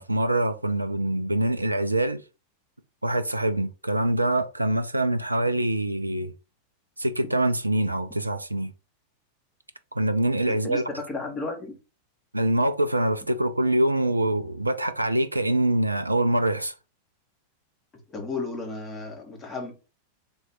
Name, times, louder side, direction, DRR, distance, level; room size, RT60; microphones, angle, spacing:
voice 1, 0.0-2.2 3.0-6.3 7.0-8.7 9.9-10.9 12.3-16.7, right 1 dB, 85° right, 0.3 m, -24 dB
voice 2, 10.5-11.8 18.1-19.7, left 3 dB, 20° left, 1.5 m, -33 dB
3.5 x 3.1 x 4.5 m
figure-of-eight pair, 90°, 0 cm